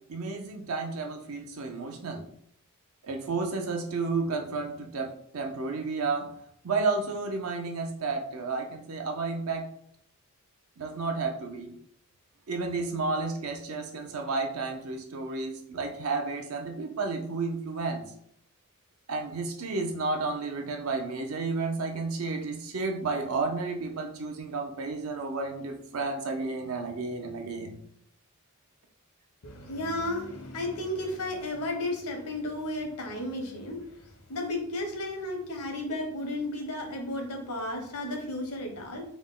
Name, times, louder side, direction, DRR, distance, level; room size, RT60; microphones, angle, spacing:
voice 1, 0.1-2.2 3.0-6.3 6.6-9.7 10.8-11.7 12.5-18.0 19.1-27.8, right 3 dB, 70° right, 3 dB, 0.6 m, -32 dB
voice 2, 29.4-33.8 34.3-39.0, left 1 dB, 85° left, 3 dB, 0.8 m, -33 dB
3.6 x 2.1 x 3.6 m, 0.68 s
head